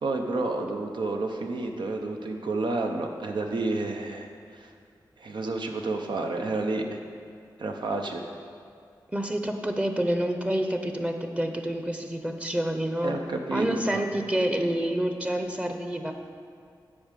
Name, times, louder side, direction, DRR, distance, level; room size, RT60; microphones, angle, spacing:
voice 1, 0.0-4.7 5.2-7.0 7.6-8.3 13.0-14.0, right 2 dB, 75° right, 3 dB, 0.9 m, -30 dB
voice 2, 9.1-13.1 13.5-16.1, right 1 dB, 15° right, 5 dB, 0.8 m, -28 dB
8.7 x 5.0 x 7.4 m, 2.3 s
cardioid pair, 65°, 8 cm